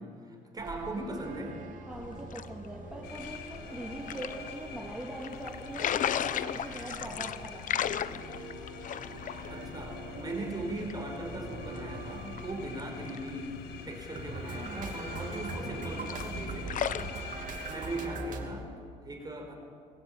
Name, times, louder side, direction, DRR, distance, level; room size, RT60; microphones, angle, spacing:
voice 1, 0.0-1.6 9.5-17.2 17.7-18.7 19.0-19.6, right 2 dB, 25° right, 2 dB, 4.6 m, -39 dB
sound 1, 0.6-18.5, right 4 dB, 50° right, 2.8 m, -44 dB
sound 2, 1.9-17.1, left 9 dB, 50° left, 0.8 m, -38 dB
voice 2, 1.9-8.2, right 1 dB, 5° right, -3 dB, 2.5 m, -42 dB
sound 3, 3.0-18.1, left 7 dB, 75° left, 2.0 m, -47 dB
20.5 x 16.0 x 8.8 m, 2.2 s
cardioid pair, 110°, 17 cm